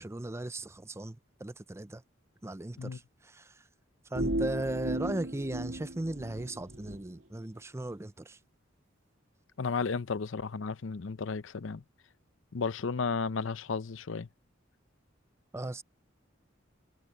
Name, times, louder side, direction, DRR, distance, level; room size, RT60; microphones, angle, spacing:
voice 1, 0.0-2.0 2.4-3.5 4.1-8.4 15.5-15.8, right 1 dB, 15° right, 0.6 m, -37 dB
sound 1, 4.1-7.0, right 1 dB, 70° right, 2.8 m, -35 dB
voice 2, 9.6-11.8 12.5-14.3, left 4 dB, 75° left, 0.6 m, -33 dB
head